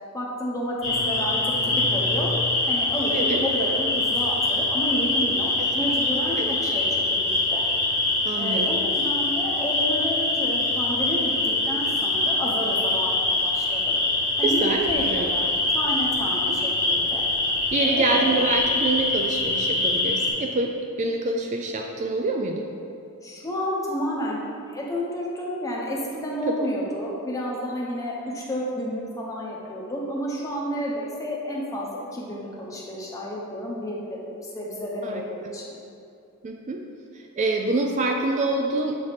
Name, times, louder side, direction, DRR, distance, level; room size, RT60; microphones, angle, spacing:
voice 1, 0.1-1.4 1.6-2.3 2.7-7.2 7.5-7.6 8.4-14.0 14.4-17.2 17.8-18.5 23.2-24.4 24.7-35.7, equal, 15° left, -4 dB, 0.8 m, -30 dB
sound 1, 0.8-20.3, left 2 dB, 65° left, 1.3 m, -24 dB
voice 2, 8.2-8.7 14.4-15.3 16.4-16.6 17.7-22.7 26.1-26.7 35.0-35.5 36.4-36.8 37.1-39.0, right 2 dB, 35° right, 2 dB, 0.3 m, -26 dB
7.2 x 3.3 x 4.1 m, 2.5 s
head